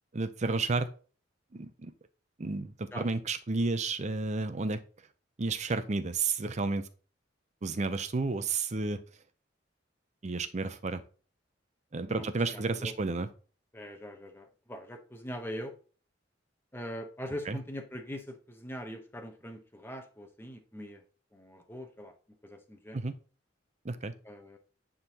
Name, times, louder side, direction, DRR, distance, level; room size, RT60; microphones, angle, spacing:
voice 1, 0.1-0.9 1.5-1.9 2.4-4.8 5.4-6.9 7.6-9.0 10.2-11.0 11.9-13.3 17.5-17.6 22.9-23.1 23.8-24.1, right 3 dB, 40° right, 11 dB, 0.6 m, -31 dB
voice 2, 12.5-12.9 13.7-15.7 16.7-21.0 21.3-22.1 22.4-23.0 24.2-24.6, equal, 10° left, 4 dB, 0.9 m, -42 dB
9.5 x 3.8 x 2.9 m, 0.39 s
head